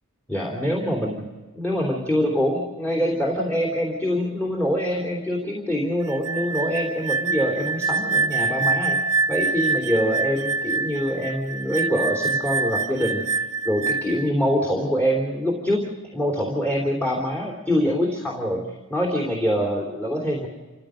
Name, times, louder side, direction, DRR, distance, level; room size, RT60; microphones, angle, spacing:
voice 1, 0.3-1.2 1.5-9.0 9.3-15.8 16.1-20.5, equal, 5° left, -2 dB, 3.2 m, -24 dB
sound 1, 6.1-14.3, right 4 dB, 80° right, 0.8 m, -25 dB
28.0 x 15.5 x 6.4 m, 1.3 s
head